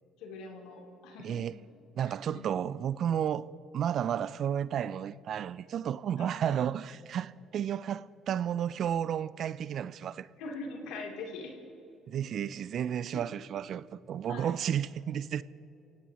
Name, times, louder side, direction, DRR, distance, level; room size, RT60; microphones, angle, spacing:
voice 1, 0.2-1.4 2.1-2.4 6.2-6.6 10.4-11.5 13.1-13.2 14.3-14.5, left 3 dB, 80° left, 3.1 m, -42 dB
voice 2, 1.2-1.6 2.0-3.5 3.7-10.3 12.1-15.4, right 9 dB, 60° right, 0.4 m, -32 dB
26.0 x 17.0 x 3.0 m
supercardioid pair, 65°, 0 cm